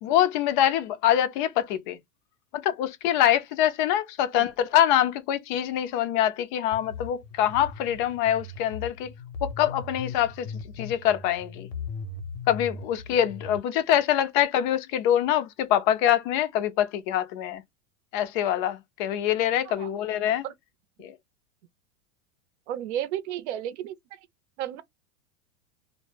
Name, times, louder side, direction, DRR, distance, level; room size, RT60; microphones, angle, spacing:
voice 1, 0.0-2.0 2.5-9.1 9.4-11.7 12.5-17.6 18.1-20.5 21.0-21.1, left 11 dB, 40° left, 0.4 m, -24 dB
sound 1, 6.7-13.6, left 4 dB, 70° left, 0.8 m, -39 dB
voice 2, 22.7-24.0 24.6-24.8, right 11 dB, 65° right, 0.6 m, -32 dB
2.1 x 2.1 x 3.1 m
supercardioid pair, 145°, 38 cm